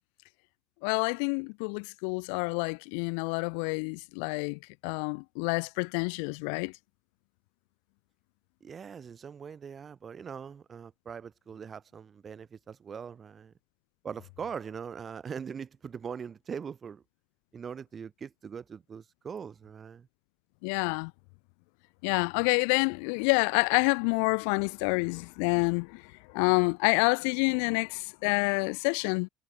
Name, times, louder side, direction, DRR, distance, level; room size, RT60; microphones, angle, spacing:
voice 1, 0.8-6.7 20.6-21.1 22.0-29.3, left 40 dB or more, 85° left, 0.5 m, -28 dB
voice 2, 8.6-13.5 14.0-17.0 17.5-20.1, right 7 dB, 25° right, 0.5 m, -41 dB
cardioid pair, 155°, 0 cm